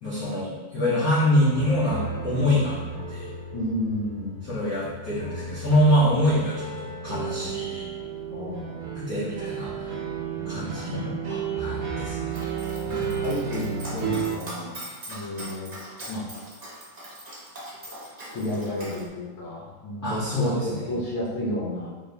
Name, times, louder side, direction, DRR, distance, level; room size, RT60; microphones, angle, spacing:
voice 1, 0.0-2.8 3.1-3.3 4.4-7.9 8.9-9.8 10.5-11.0 11.2-12.4 20.0-20.9, equal, 55° left, -12 dB, 1.3 m, -25 dB
sound 1, 1.5-14.4, right 6 dB, 70° right, 0.9 m, -33 dB
voice 2, 3.5-4.4 8.3-8.9 10.4-11.1 12.8-14.8 15.1-15.7 16.1-16.2 18.3-21.9, left 1 dB, 70° left, -5 dB, 1.7 m, -32 dB
Dog, 12.3-19.0, right 1 dB, 35° right, 0.6 m, -41 dB
4.2 x 3.1 x 3.3 m, 1.3 s
omnidirectional pair, 2.4 m